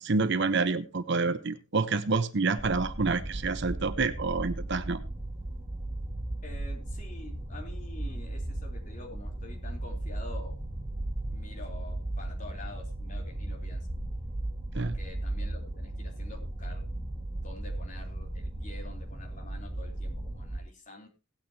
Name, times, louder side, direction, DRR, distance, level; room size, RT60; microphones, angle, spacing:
voice 1, 0.0-5.0 14.8-14.9, right 4 dB, 55° right, 12 dB, 0.8 m, -28 dB
sound 1, 2.6-20.6, right 1 dB, 30° right, 2.5 m, -36 dB
voice 2, 6.4-10.6 11.3-13.9 14.7-16.8 17.4-21.1, left 2 dB, 35° left, 0 dB, 3.5 m, -47 dB
18.0 x 9.2 x 2.8 m, 0.29 s
head